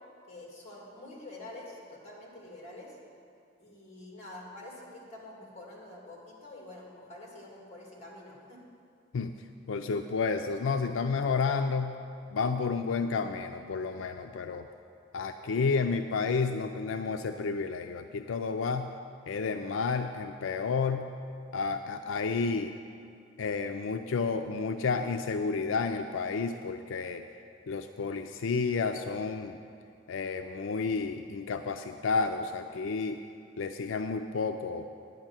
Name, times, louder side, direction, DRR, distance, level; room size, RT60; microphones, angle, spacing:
voice 1, 0.3-3.0 3.6-8.6, left 1 dB, 35° left, -3 dB, 2.5 m, -47 dB
voice 2, 9.7-12.0 12.3-14.7 15.1-18.9 19.3-21.1 21.5-22.7 23.4-27.2 27.7-29.6 30.1-33.2 33.6-34.9, left 4 dB, 85° left, 7 dB, 0.4 m, -31 dB
10.0 x 6.3 x 8.9 m, 2.5 s
head